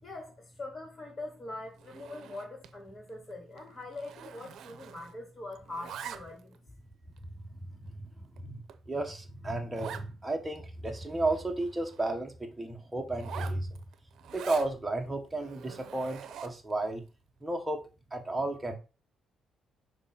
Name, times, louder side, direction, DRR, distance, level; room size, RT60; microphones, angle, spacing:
voice 1, 0.0-6.6, left 2 dB, 30° left, 2.4 m, -43 dB
Zipper (clothing), 1.8-2.8 3.1-3.3 3.6-5.3 5.5-6.6 7.2-7.3 7.9-8.0 8.4-8.5 8.7-8.8 9.0-9.1 9.7-10.1 10.5-10.6 10.8-12.1 13.1-14.7 15.3-16.7, right 8 dB, 75° right, 0.7 m, -45 dB
voice 2, 7.7-8.6 8.9-13.8 14.3-17.0 17.4-17.8 18.1-18.8, right 2 dB, 10° right, 1.3 m, -33 dB
6.2 x 3.1 x 5.7 m
cardioid pair, 90°, 0 cm